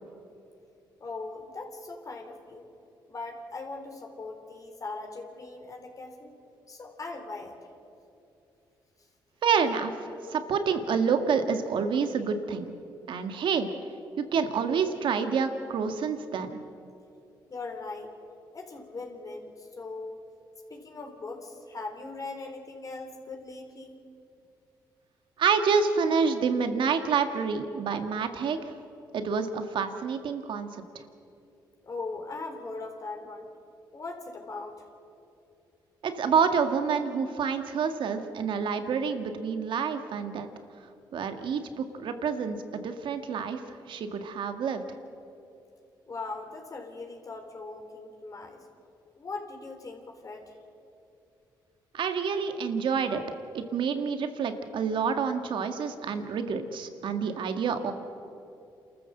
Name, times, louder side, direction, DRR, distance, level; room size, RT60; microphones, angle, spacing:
voice 1, 1.0-2.6 3.1-6.4 6.7-7.6 17.5-18.1 18.5-20.2 20.7-24.0 31.8-33.5 33.9-34.8 46.1-48.6 49.1-50.6, left 3 dB, 40° left, 2 dB, 3.7 m, -40 dB
voice 2, 9.4-9.9 10.3-12.7 13.1-13.7 14.2-16.6 25.4-28.7 29.1-30.7 36.0-40.5 41.1-44.8 51.9-53.2 53.5-57.9, right 6 dB, 70° right, 7 dB, 1.9 m, -28 dB
28.0 x 14.0 x 7.8 m, 2.7 s
cardioid pair, 70°, 9 cm